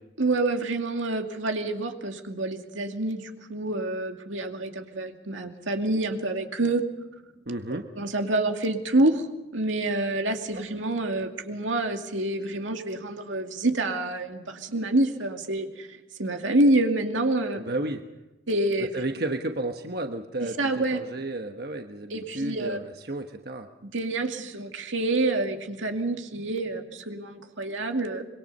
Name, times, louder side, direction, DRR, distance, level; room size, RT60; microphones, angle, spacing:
voice 1, 0.2-6.8 8.0-9.3 9.5-17.6 18.5-19.0 20.6-21.0 22.1-22.8 23.8-28.2, right 2 dB, 85° right, 4 dB, 2.4 m, -27 dB
voice 2, 7.5-7.8 10.5-10.6 17.5-18.0 18.9-23.7, right 2 dB, 55° right, 4 dB, 1.3 m, -32 dB
25.5 x 23.0 x 5.5 m, 1.0 s
head